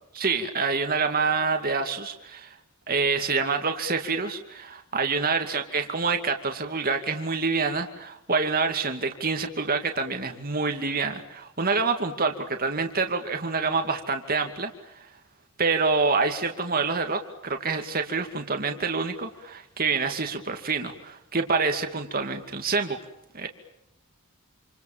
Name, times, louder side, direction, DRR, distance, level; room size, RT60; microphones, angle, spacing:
voice 1, 0.1-2.6 2.9-14.7 15.0-15.1 15.6-23.0 23.3-23.5, right 4 dB, 40° right, 5 dB, 2.4 m, -27 dB
28.0 x 28.0 x 7.4 m, 0.81 s
head